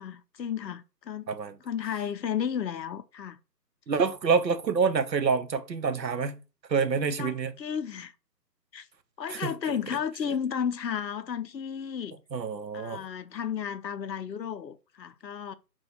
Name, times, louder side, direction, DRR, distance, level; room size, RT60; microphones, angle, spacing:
voice 1, 0.0-1.3 1.6-3.4 7.2-8.1 8.7-8.9 9.2-12.2 12.7-15.5, left 8 dB, 85° left, 0.6 m, -33 dB
voice 2, 3.9-6.4 6.7-7.6 9.3-9.5 12.3-13.1, right 5 dB, 90° right, 0.7 m, -27 dB
4.4 x 2.2 x 4.4 m
figure-of-eight pair, 150°, 49 cm